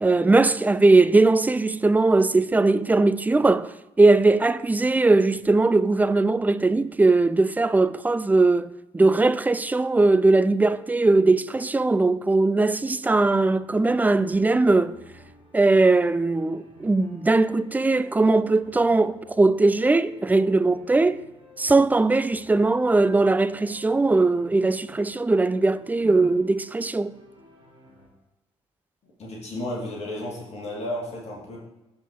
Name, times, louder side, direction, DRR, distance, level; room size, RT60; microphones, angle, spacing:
voice 1, 0.0-14.9 15.5-21.2 21.6-27.2, right 3 dB, 10° right, 0.3 m, -20 dB
sound 1, 13.3-28.1, equal, 90° left, 1.6 m, -51 dB
voice 2, 29.0-31.6, left 1 dB, 45° left, 2.3 m, -33 dB
12.0 x 4.4 x 2.9 m
figure-of-eight pair, 40°, 15 cm